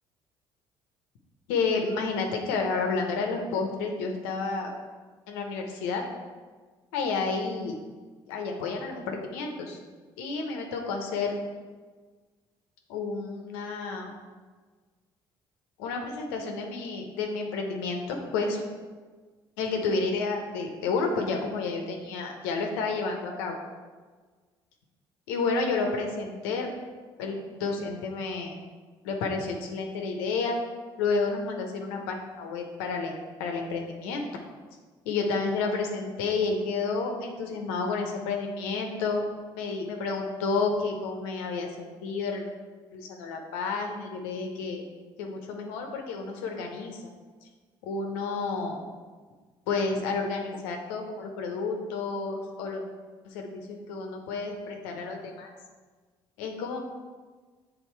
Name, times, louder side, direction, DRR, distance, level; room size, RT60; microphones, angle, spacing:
voice 1, 1.5-4.7 5.3-6.0 6.9-7.8 8.3-9.8 10.2-11.4 12.9-14.1 15.8-18.6 19.6-23.6 25.3-26.7 27.2-28.6 29.0-30.6 31.0-33.1 33.4-34.2 35.0-39.2 39.5-41.8 42.0-42.4 42.9-44.8 45.2-47.1 47.8-48.8 49.7-52.8 53.2-55.5 56.4-56.8, left 4 dB, 90° left, 3 dB, 0.9 m, -30 dB
7.3 x 3.7 x 4.5 m, 1.4 s
supercardioid pair, 65°, 12 cm